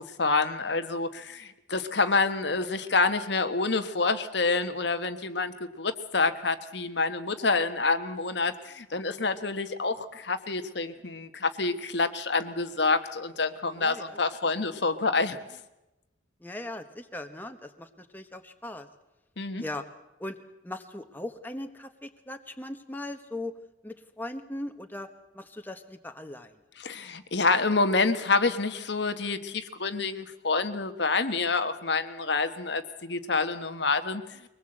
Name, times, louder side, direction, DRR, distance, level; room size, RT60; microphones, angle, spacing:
voice 1, 0.2-15.4 19.4-19.6 26.8-34.5, left 3 dB, 60° left, 8 dB, 1.3 m, -27 dB
voice 2, 13.7-14.2 16.4-18.9 19.6-19.8 20.2-20.4 20.6-23.5 23.8-25.1 25.3-26.6, left 1 dB, 10° left, 5 dB, 1.3 m, -39 dB
23.5 x 19.5 x 7.8 m, 0.96 s
head